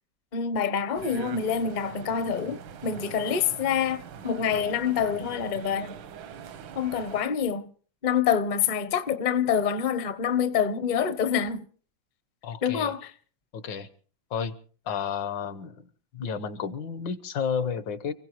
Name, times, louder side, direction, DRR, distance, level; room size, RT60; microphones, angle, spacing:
voice 1, 0.3-6.0 6.7-7.7 8.0-11.7 12.6-13.1, left 7 dB, 40° left, 0.6 m, -26 dB
sound 1, 0.9-7.2, right 8 dB, 85° right, 1.8 m, -43 dB
voice 2, 12.4-12.9 13.5-13.9 14.3-14.6 14.9-15.8 16.1-18.1, left 6 dB, 75° left, 1.7 m, -31 dB
29.5 x 16.5 x 3.1 m
omnidirectional pair, 2.1 m